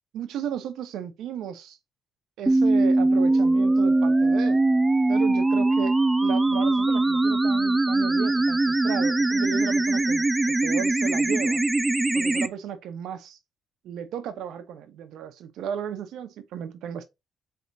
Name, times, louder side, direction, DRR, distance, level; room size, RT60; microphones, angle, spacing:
voice 1, 0.1-1.8 2.4-4.6 5.1-11.6 12.1-13.4 13.8-17.0, right 8 dB, 80° right, 0.9 m, -35 dB
sound 1, 2.5-12.5, right 2 dB, 15° right, 0.5 m, -21 dB
4.6 x 3.5 x 2.7 m
cardioid pair, 90°, 0 cm